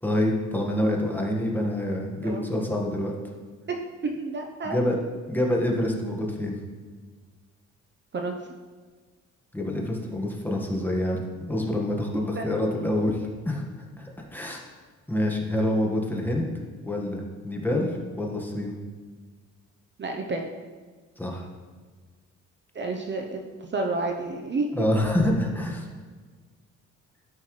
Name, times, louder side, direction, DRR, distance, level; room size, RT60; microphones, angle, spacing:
voice 1, 0.0-3.1 4.6-5.0 5.3-6.6 9.5-13.2 13.4-13.6 14.0-14.6 15.1-16.4 16.8-18.7 21.2-21.4 24.7-25.9, left 1 dB, 5° left, -1 dB, 1.6 m, -26 dB
voice 2, 4.0-4.8 8.1-8.4 12.4-12.5 20.0-20.5 22.7-24.9, right 3 dB, 35° right, 3 dB, 0.8 m, -30 dB
13.0 x 5.6 x 3.2 m, 1.5 s
cardioid pair, 90°, 30 cm